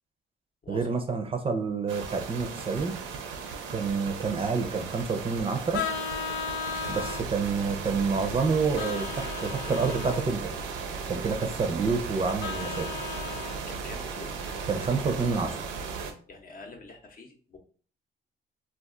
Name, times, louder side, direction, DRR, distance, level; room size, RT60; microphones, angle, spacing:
voice 1, 0.7-3.0 3.7-5.9 6.9-10.5 11.0-12.9 14.7-15.6, right 4 dB, 30° right, 5 dB, 0.5 m, -28 dB
sound 1, 1.9-16.1, right 5 dB, 80° right, 0.6 m, -36 dB
Vehicle horn car horn honking, 5.7-7.3 8.8-10.3 12.4-13.6, left 7 dB, 90° left, 0.4 m, -35 dB
voice 2, 13.7-14.4 16.3-17.6, left 3 dB, 45° left, 4 dB, 0.8 m, -46 dB
2.4 x 2.3 x 3.7 m, 0.42 s
cardioid pair, 90°, 20 cm